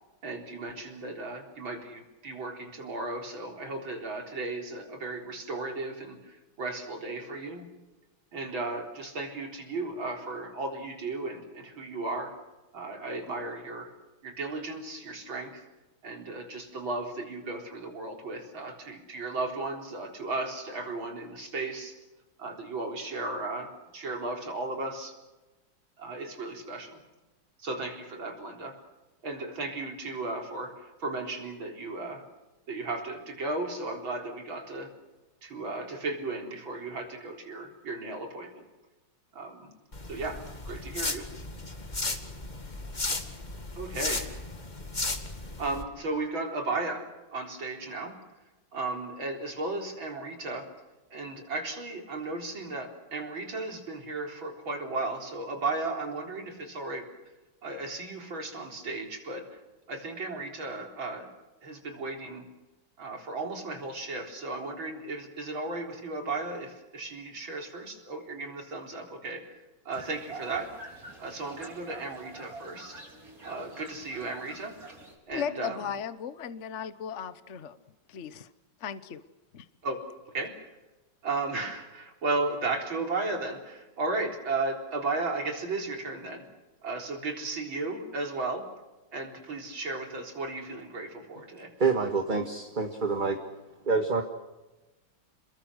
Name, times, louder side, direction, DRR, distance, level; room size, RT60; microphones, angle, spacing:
voice 1, 0.2-7.7 8.3-12.4 12.7-13.9 14.2-15.6 16.0-22.0 22.4-25.2 26.0-27.0 27.6-28.8 29.2-32.2 32.7-34.9 35.4-38.6 39.3-39.7 40.1-41.3 43.7-44.4 45.6-48.2 48.7-50.7 51.1-57.1 57.6-59.5 59.9-61.3 61.6-62.5 63.0-69.6 69.8-70.7 71.2-73.0 73.4-75.0 75.3-75.9 79.8-80.0 80.3-80.6 81.2-86.4 86.8-88.6 89.1-91.7, right 3 dB, 75° right, 4.8 m, -35 dB
sound 1, 39.9-45.8, left 2 dB, 20° left, 2.0 m, -35 dB
sound 2, 69.9-75.1, right 2 dB, 45° right, 5.0 m, -47 dB
voice 2, 75.3-77.7 78.1-78.5 78.8-79.2 79.5-79.7, left 7 dB, 45° left, 1.1 m, -36 dB
voice 3, 91.8-93.4 93.9-94.2, right 4 dB, 25° right, 1.7 m, -26 dB
29.0 x 21.5 x 6.4 m
omnidirectional pair, 2.2 m